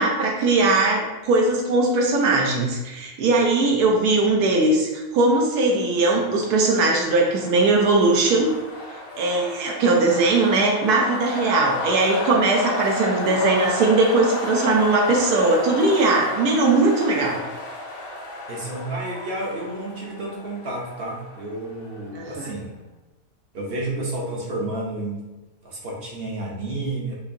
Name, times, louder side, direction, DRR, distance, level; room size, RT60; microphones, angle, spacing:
voice 1, 0.0-8.5 9.2-17.4 22.1-22.4, right 2 dB, 85° right, 0 dB, 1.1 m, -20 dB
sound 1, 5.7-22.3, left 1 dB, 55° left, 0.6 m, -33 dB
voice 2, 18.5-22.7 23.5-25.2 25.6-27.1, right 2 dB, 55° right, -2 dB, 0.7 m, -30 dB
4.6 x 2.5 x 2.5 m, 1.1 s
omnidirectional pair, 1.7 m